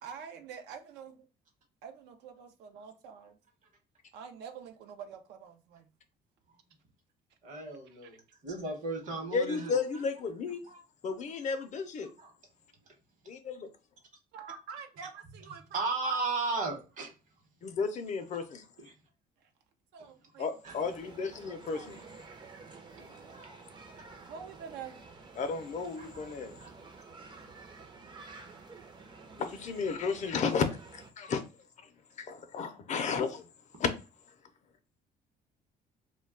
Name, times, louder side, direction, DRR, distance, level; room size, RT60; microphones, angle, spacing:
voice 1, 0.0-1.3 1.8-3.4 4.1-5.9 7.9-8.1 14.3-16.2 19.4-19.5 19.9-20.5 21.7-22.2 24.3-25.0 26.9-27.0, right 6 dB, 80° right, 0.5 m, -46 dB
voice 2, 7.4-8.2 8.4-9.8 10.7-10.8 12.2-12.3 15.7-17.1 18.8-18.9 20.6-20.7 26.0-26.3 26.6-26.7, right 3 dB, 50° right, 1.0 m, -35 dB
voice 3, 9.3-10.6 11.0-12.1 13.3-13.7 17.6-18.6 20.4-22.0 25.4-26.5 29.4-31.4 32.2-33.4 33.8-33.9, left 5 dB, 45° left, 0.5 m, -33 dB
sound 1, 20.6-31.1, right 4 dB, 25° right, 0.5 m, -51 dB
2.2 x 2.2 x 3.6 m
cardioid pair, 110°, 17 cm